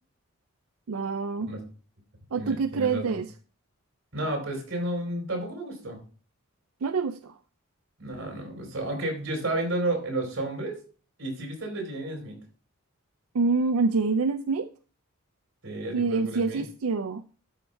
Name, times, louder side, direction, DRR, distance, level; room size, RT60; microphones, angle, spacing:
voice 1, 0.9-1.5 2.3-3.3 6.8-7.3 13.3-14.7 15.9-17.2, right 4 dB, 90° right, 10 dB, 0.5 m, -26 dB
voice 2, 2.4-3.2 4.1-6.0 8.0-10.8 11.2-12.4 15.6-16.6, right 1 dB, 65° right, 2 dB, 4.1 m, -32 dB
12.5 x 5.4 x 3.3 m, 0.38 s
head